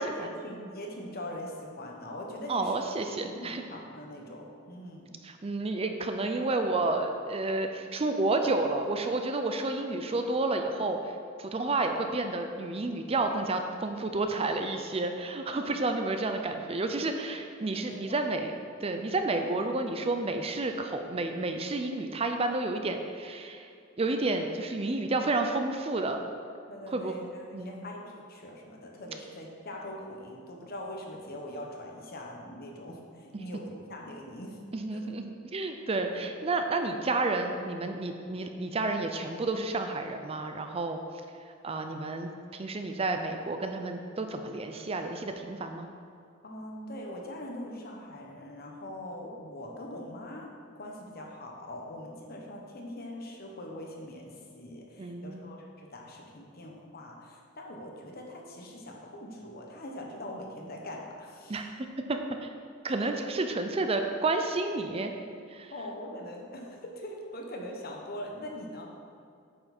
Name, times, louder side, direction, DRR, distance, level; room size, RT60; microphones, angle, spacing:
voice 1, 0.0-2.8 3.2-5.1 15.6-15.7 17.0-17.4 17.7-18.2 26.7-34.6 34.9-35.0 36.1-36.2 46.4-61.7 65.7-68.9, left 1 dB, 50° left, 0 dB, 1.2 m, -42 dB
voice 2, 2.5-3.6 5.2-11.1 11.4-18.5 18.8-23.7 24.0-26.2 26.9-27.3 27.5-27.9 34.7-41.0 41.6-45.9 55.0-55.5 61.5-61.7 62.1-62.5 62.8-65.1 65.5-65.7, right 2 dB, 30° right, 5 dB, 0.5 m, -30 dB
8.7 x 6.9 x 4.3 m, 2.4 s
head